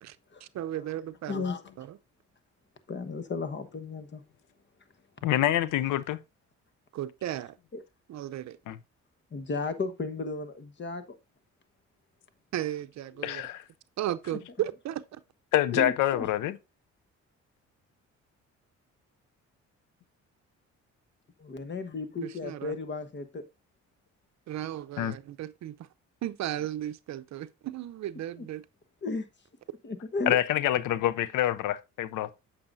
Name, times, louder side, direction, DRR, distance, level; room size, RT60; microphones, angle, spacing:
voice 1, 0.4-1.4 1.8-2.0 6.9-7.6 8.1-8.6 12.5-13.4 14.0-15.2 22.2-22.7 24.5-25.8 26.2-28.6, right 12 dB, 65° right, 0.6 m, -35 dB
voice 2, 1.3-1.6 2.9-4.2 7.7-7.8 9.3-11.2 14.3-14.4 15.7-16.3 21.4-23.4 28.4-28.5 29.0-29.3 29.8-30.4, left 3 dB, 35° left, 1.2 m, -34 dB
voice 3, 5.2-6.2 8.7-8.8 13.2-13.6 15.5-16.6 25.0-25.1 30.3-32.3, left 13 dB, 85° left, 0.6 m, -26 dB
8.7 x 6.9 x 2.6 m
cardioid pair, 90°, 30 cm